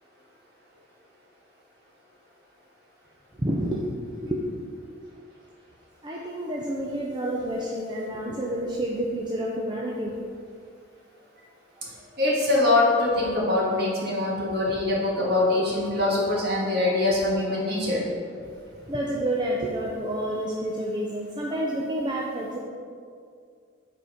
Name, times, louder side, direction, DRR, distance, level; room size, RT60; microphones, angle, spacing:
voice 1, 3.4-4.4 6.0-10.1 18.9-22.6, right 1 dB, 20° right, -3 dB, 0.5 m, -29 dB
voice 2, 12.2-18.0, left 2 dB, 50° right, -5 dB, 1.8 m, -23 dB
7.8 x 4.3 x 5.0 m, 2.2 s
head